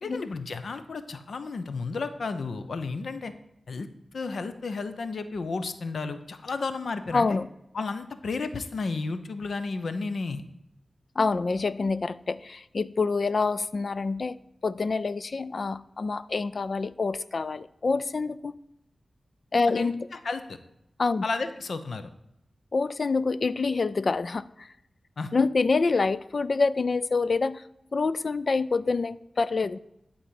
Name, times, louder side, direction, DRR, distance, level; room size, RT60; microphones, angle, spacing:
voice 1, 0.0-3.3 3.7-3.9 4.1-7.3 7.7-10.4 19.7-20.6 21.2-22.1 25.2-25.3, left 4 dB, 75° left, 10 dB, 0.8 m, -32 dB
voice 2, 7.1-7.5 11.2-14.4 14.6-18.6 19.5-20.1 21.0-21.2 22.7-24.7 25.3-27.6 27.9-29.8, left 4 dB, 55° left, 17 dB, 0.4 m, -26 dB
11.5 x 4.2 x 7.6 m, 0.82 s
wide cardioid pair, 75°, 0 cm